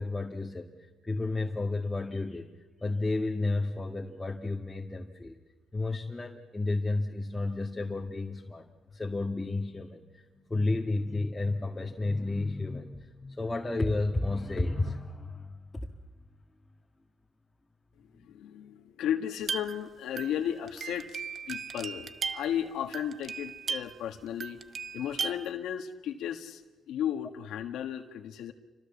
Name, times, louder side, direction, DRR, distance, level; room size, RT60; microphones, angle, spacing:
voice 1, 0.0-2.5 2.8-5.4 5.7-10.0 10.5-15.9, left 2 dB, 15° left, 0 dB, 1.8 m, -32 dB
voice 2, 18.0-21.2 21.5-24.6 24.9-26.6 26.9-28.5, left 10 dB, 85° left, 4 dB, 1.6 m, -34 dB
sound 1, 19.4-24.1 24.4-25.5, right 5 dB, 50° right, 0.8 m, -37 dB
28.5 x 25.0 x 7.2 m, 1.2 s
cardioid pair, 90°, 0 cm